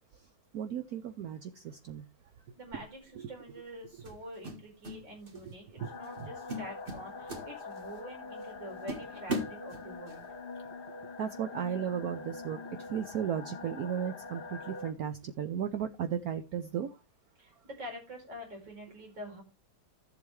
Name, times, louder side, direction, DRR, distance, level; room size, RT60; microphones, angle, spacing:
voice 1, 0.5-2.0 3.2-3.3 5.4-5.9 6.2-6.3 11.2-17.0, right 8 dB, 65° right, 9 dB, 1.1 m, -35 dB
voice 2, 2.6-10.3 17.4-19.4, equal, 90° right, 0 dB, 5.4 m, -46 dB
sound 1, 2.7-3.0 4.1-5.0 5.3-5.6 6.0-6.2 6.5-8.0 8.4-8.5 8.9-10.2, right 1 dB, 30° right, 1.9 m, -38 dB
sound 2, 5.8-14.9, left 4 dB, 30° left, 1.3 m, -44 dB
13.0 x 7.8 x 3.2 m, 0.27 s
omnidirectional pair, 2.0 m